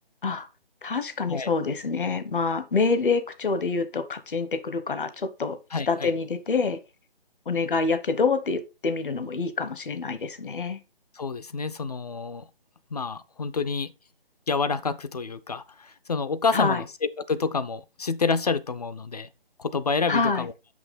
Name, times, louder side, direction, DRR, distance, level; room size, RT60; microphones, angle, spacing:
voice 1, 0.8-5.6 5.9-6.8 7.5-10.8 16.5-16.8 20.1-20.5, left 4 dB, 60° left, 1.1 m, -26 dB
voice 2, 5.7-6.1 11.2-12.5 12.9-13.9 14.5-16.9 17.2-19.3 19.6-20.5, left 4 dB, 45° left, 0.5 m, -28 dB
6.0 x 5.9 x 4.1 m
figure-of-eight pair, 150°, 29 cm